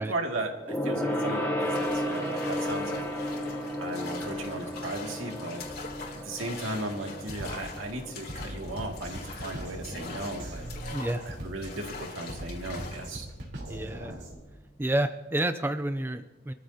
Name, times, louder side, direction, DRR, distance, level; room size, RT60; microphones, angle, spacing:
voice 1, 0.0-3.0 3.8-5.6 6.2-10.6 11.3-13.3, right 2 dB, 75° right, 2 dB, 2.3 m, -36 dB
Gong, 0.7-10.5 10.8-11.0 11.3-11.4, equal, 10° left, 2.7 m, -34 dB
sound 1, 1.6-13.2, left 4 dB, 50° left, 2.9 m, -43 dB
Drum kit, 6.5-6.7 7.2-14.4, right 1 dB, 60° right, 3.6 m, -41 dB
voice 2, 10.9-11.2 13.7-14.2 14.8-16.5, right 1 dB, 10° right, 9 dB, 0.4 m, -30 dB
27.0 x 14.0 x 2.8 m, 1.1 s
head